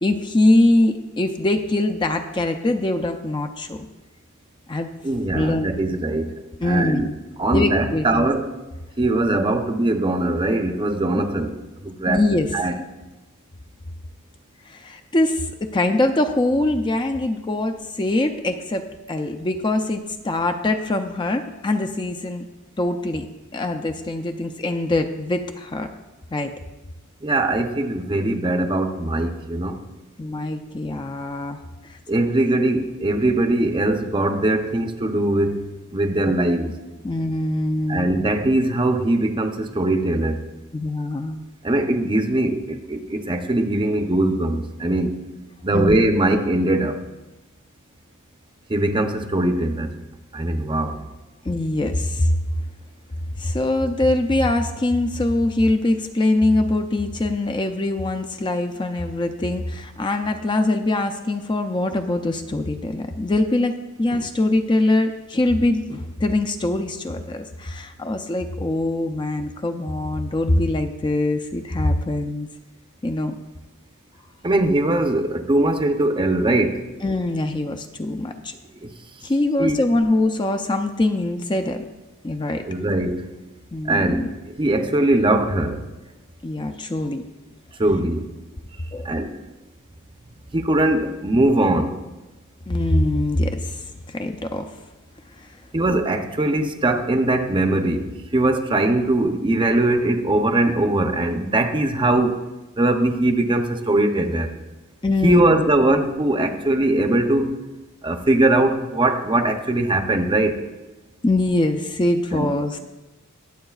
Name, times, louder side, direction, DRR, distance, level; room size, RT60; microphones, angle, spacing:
voice 1, 0.0-3.8 4.7-4.9 5.3-5.7 6.6-7.1 7.5-8.3 9.3-9.4 12.1-12.5 14.7-22.4 22.8-23.3 23.5-25.9 26.3-26.5 30.2-31.6 31.9-32.0 37.0-38.1 40.7-41.4 45.7-45.9 51.4-52.4 53.4-72.5 73.0-73.4 77.0-78.5 79.2-81.8 82.2-82.6 83.7-84.3 86.4-87.2 88.9-89.1 92.7-94.7 95.4-95.5 105.0-105.6 111.2-112.8, left 2 dB, 20° left, 6 dB, 0.5 m, -23 dB
voice 2, 5.0-6.3 6.6-7.1 7.4-8.5 9.0-11.5 11.8-12.2 12.5-12.7 27.2-29.8 32.1-35.7 35.9-36.7 37.9-40.4 41.6-45.1 45.6-47.0 48.7-49.9 50.3-51.0 74.4-76.8 78.8-78.9 79.6-79.8 82.7-83.2 83.9-84.3 84.6-85.8 87.8-88.2 89.0-89.3 90.5-92.0 95.7-102.4 102.8-104.5 105.2-107.5 108.0-110.6 112.3-112.5, right 1 dB, 20° right, 6 dB, 0.7 m, -21 dB
22.0 x 7.7 x 2.4 m, 1.1 s
head